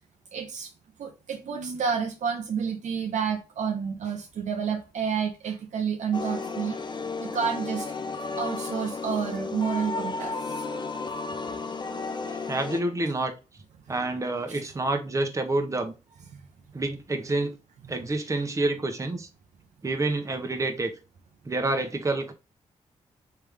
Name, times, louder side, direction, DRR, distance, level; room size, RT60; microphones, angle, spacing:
voice 1, 0.3-0.7 1.0-6.8 7.2-7.9 8.4-10.4, right 6 dB, 75° right, 0.7 m, -29 dB
sound 1, 6.1-12.8, left 4 dB, 40° left, 0.8 m, -33 dB
voice 2, 12.3-13.3 13.9-15.9 16.7-17.6 17.9-19.3 19.8-20.9 21.4-22.3, right 2 dB, 25° right, 0.9 m, -28 dB
3.4 x 3.3 x 3.4 m
cardioid pair, 65°, 13 cm